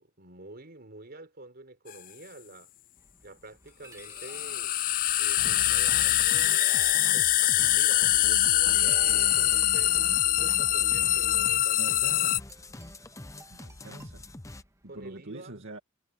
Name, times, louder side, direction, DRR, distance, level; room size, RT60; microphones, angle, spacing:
voice 1, 0.0-2.7 3.2-4.8 5.2-12.3 14.9-15.5, right 2 dB, 50° right, 4.4 m, -48 dB
sound 1, 1.9-2.0 4.0-12.4, left 14 dB, 40° left, 0.4 m, -24 dB
sound 2, 3.0-15.1, right 2 dB, 15° right, 2.7 m, -53 dB
sound 3, 5.4-14.6, left 1 dB, 15° left, 0.9 m, -44 dB
voice 2, 11.7-12.4 13.5-14.2 14.9-15.8, right 2 dB, 65° right, 2.3 m, -44 dB
head